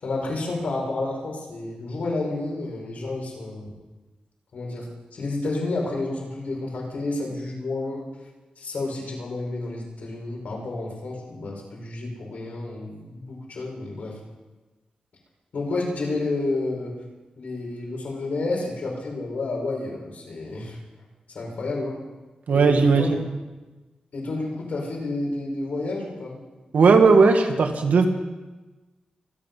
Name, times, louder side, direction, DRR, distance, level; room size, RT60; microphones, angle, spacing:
voice 1, 0.0-3.7 4.5-4.9 5.1-8.0 8.6-14.1 15.5-16.9 17.4-20.8 21.3-22.0 22.5-23.2 24.1-26.4, left 2 dB, 80° left, -2 dB, 5.5 m, -30 dB
voice 2, 22.5-23.2 26.7-28.1, right 4 dB, 90° right, 5 dB, 1.7 m, -17 dB
25.5 x 10.0 x 5.5 m, 1.2 s
wide cardioid pair, 90°, 3 cm